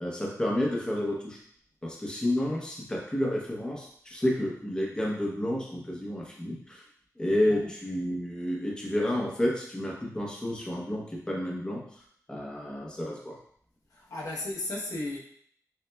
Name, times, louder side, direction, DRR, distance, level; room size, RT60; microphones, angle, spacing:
voice 1, 0.0-1.4 1.8-6.8 7.2-11.8 12.3-13.4, left 1 dB, 15° left, -3 dB, 0.7 m, -30 dB
voice 2, 13.9-15.2, left 2 dB, 80° left, -3 dB, 0.9 m, -35 dB
6.5 x 2.2 x 2.2 m, 0.63 s
wide cardioid pair, 145°, 6 cm